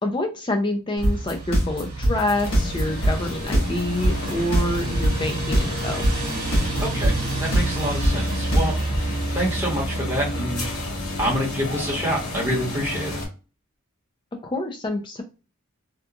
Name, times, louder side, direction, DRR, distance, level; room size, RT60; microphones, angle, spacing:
voice 1, 0.0-6.1 14.4-15.2, left 1 dB, 20° left, 4 dB, 0.4 m, -27 dB
sound 1, 1.0-9.0, right 1 dB, 60° left, 1.0 m, -20 dB
sound 2, 1.0-12.7, right 2 dB, 45° right, 1.0 m, -31 dB
sound 3, 2.3-13.3, left 2 dB, 80° left, 1.4 m, -32 dB
voice 2, 6.8-8.7 9.3-10.6 11.2-13.2, equal, 10° right, -5 dB, 1.0 m, -27 dB
2.8 x 2.3 x 2.3 m, 0.32 s
head